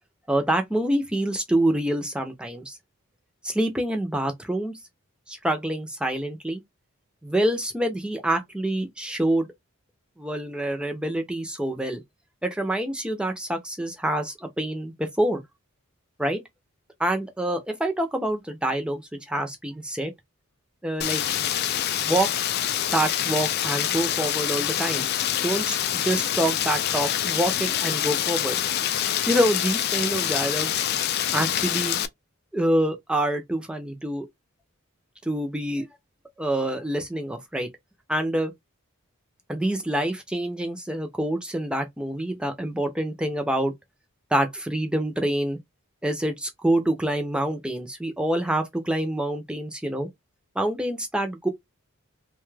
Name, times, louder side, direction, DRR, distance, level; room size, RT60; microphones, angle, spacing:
voice 1, 0.3-2.8 3.4-4.7 5.3-6.6 7.2-9.5 10.2-12.0 12.4-15.4 16.2-16.4 17.0-20.1 20.8-21.5 22.0-22.3 22.9-25.1 25.4-28.6 29.3-30.8 31.3-32.0 32.5-34.3 35.3-35.9 36.4-37.7 38.1-38.5 39.5-43.7 44.3-45.6 46.0-50.1 50.6-51.5, right 1 dB, 5° right, 0.5 m, -26 dB
Rain, 21.0-32.1, left 10 dB, 45° left, 0.3 m, -26 dB
2.7 x 2.3 x 3.2 m
head